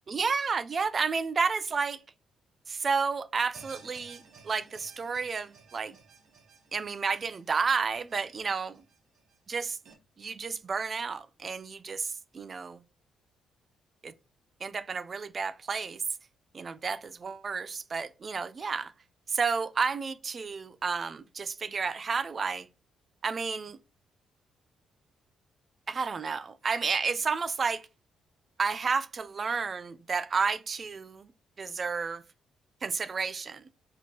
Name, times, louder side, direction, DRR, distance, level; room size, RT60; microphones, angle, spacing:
voice 1, 0.1-2.0 2.7-6.0 6.7-8.7 9.5-9.8 10.2-12.8 14.0-14.1 14.6-16.0 16.5-18.9 19.3-22.7 23.2-23.8 25.9-27.9 28.6-31.3 31.6-32.2 32.8-33.6, right 5 dB, 40° right, 0.4 m, -31 dB
sound 1, 3.5-9.9, right 5 dB, 65° right, 1.2 m, -55 dB
5.9 x 3.0 x 2.8 m
cardioid pair, 90°, 0 cm